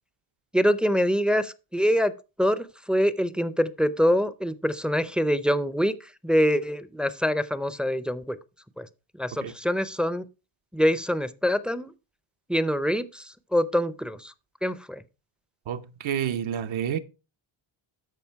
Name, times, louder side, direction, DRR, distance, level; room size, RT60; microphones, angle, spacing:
voice 1, 0.5-2.1 2.4-5.9 6.2-8.4 8.8-8.9 9.2-10.2 10.7-11.9 12.5-14.3 14.6-15.0, equal, ahead, 0.4 m, -25 dB
voice 2, 15.7-17.0, right 9 dB, 70° right, 1.0 m, -29 dB
13.0 x 5.0 x 4.5 m
cardioid pair, 135°, 49 cm